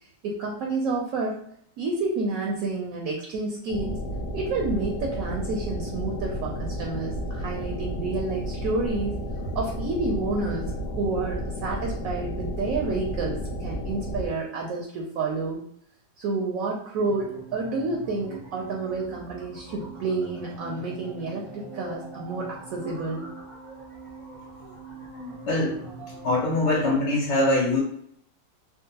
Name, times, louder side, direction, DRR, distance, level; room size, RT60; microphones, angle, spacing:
voice 1, 0.2-1.4 1.8-4.0 4.3-9.2 9.5-10.7 11.0-15.6 16.2-23.3, right 3 dB, 70° right, -1 dB, 0.9 m, -29 dB
sound 1, 3.7-14.3, equal, 65° left, 1.1 m, -32 dB
sound 2, 17.0-26.9, right 2 dB, 35° right, 0.5 m, -42 dB
voice 2, 25.5-25.8 26.2-27.8, left 2 dB, 85° left, -6 dB, 1.8 m, -23 dB
3.6 x 2.0 x 2.8 m, 0.66 s
omnidirectional pair, 1.8 m